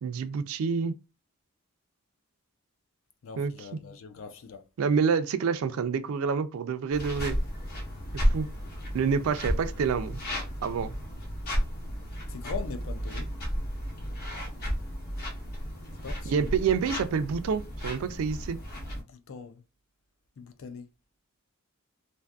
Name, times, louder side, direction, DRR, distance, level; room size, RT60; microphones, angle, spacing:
voice 1, 0.0-0.9 3.4-3.5 4.8-7.4 8.3-8.5 8.9-10.2 10.6-10.9 16.3-18.6, right 6 dB, 70° right, 0.3 m, -27 dB
voice 2, 3.2-4.6 12.3-13.3 16.0-16.5 19.0-19.6 20.4-20.9, left 5 dB, 65° left, 0.4 m, -41 dB
sound 1, 6.9-19.0, equal, 45° left, 0.9 m, -33 dB
2.5 x 2.5 x 2.3 m
head